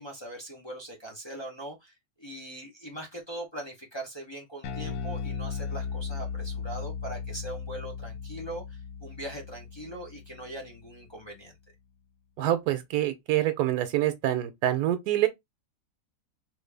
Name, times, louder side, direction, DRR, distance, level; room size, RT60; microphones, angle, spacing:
voice 1, 0.0-11.5, right 1 dB, 40° left, 0.3 m, -41 dB
Bass guitar, 4.6-11.1, left 6 dB, 75° left, 1.2 m, -37 dB
voice 2, 12.4-15.3, right 13 dB, 75° right, 1.0 m, -26 dB
3.2 x 2.4 x 3.3 m
omnidirectional pair, 1.7 m